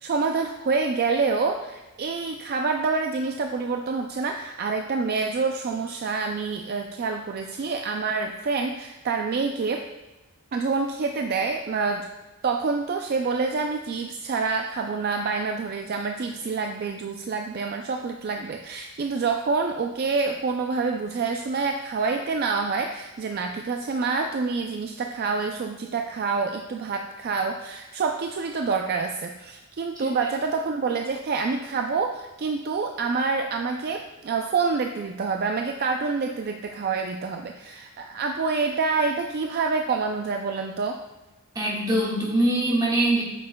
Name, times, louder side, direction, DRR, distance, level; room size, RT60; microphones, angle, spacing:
voice 1, 0.0-9.8 10.5-12.1 12.4-41.0, right 4 dB, 45° right, 4 dB, 0.4 m, -27 dB
voice 2, 41.5-43.2, right 1 dB, 20° right, -5 dB, 1.6 m, -23 dB
8.5 x 6.6 x 2.2 m, 1.1 s
head